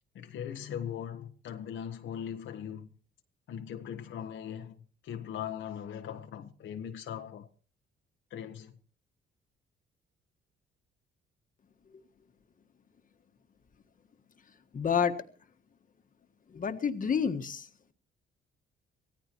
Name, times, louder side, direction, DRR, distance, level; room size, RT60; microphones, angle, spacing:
voice 1, 0.1-2.9 3.5-7.5 8.3-8.7, left 9 dB, 75° left, 1.3 m, -40 dB
voice 2, 14.7-15.1 16.5-17.9, left 7 dB, 45° left, 1.6 m, -29 dB
24.5 x 16.0 x 3.0 m
cardioid pair, 90°, 20 cm